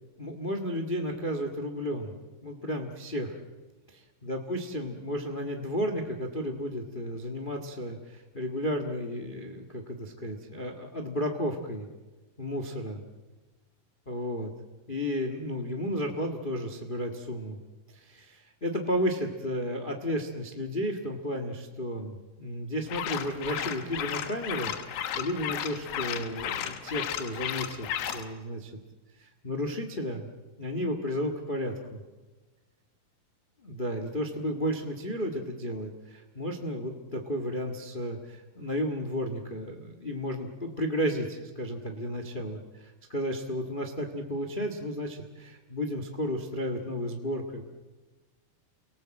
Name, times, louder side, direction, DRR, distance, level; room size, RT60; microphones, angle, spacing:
voice 1, 0.2-2.1 2.4-3.4 3.9-11.9 12.4-13.0 14.1-14.5 14.9-17.6 17.9-28.7 29.2-30.3 30.6-32.0 33.6-47.6, equal, 40° left, 5 dB, 0.6 m, -33 dB
sound 1, 22.9-28.3, left 10 dB, 85° left, 3.0 m, -34 dB
29.0 x 19.0 x 7.7 m, 1.2 s
omnidirectional pair, 4.0 m